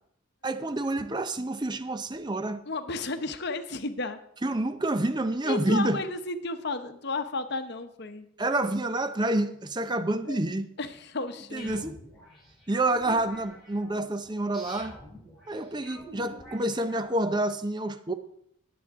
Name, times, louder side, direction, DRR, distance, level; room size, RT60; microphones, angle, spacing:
voice 1, 0.4-2.6 4.4-6.0 8.4-10.7 11.5-12.0 12.7-15.0 15.5-18.1, right 2 dB, 20° right, 0.6 m, -28 dB
voice 2, 2.7-4.2 5.4-8.3 10.3-10.4 10.8-11.8, left 3 dB, 50° left, 0.9 m, -33 dB
sound 1, 11.6-17.4, equal, ahead, 4.9 m, -48 dB
20.5 x 7.9 x 3.6 m
head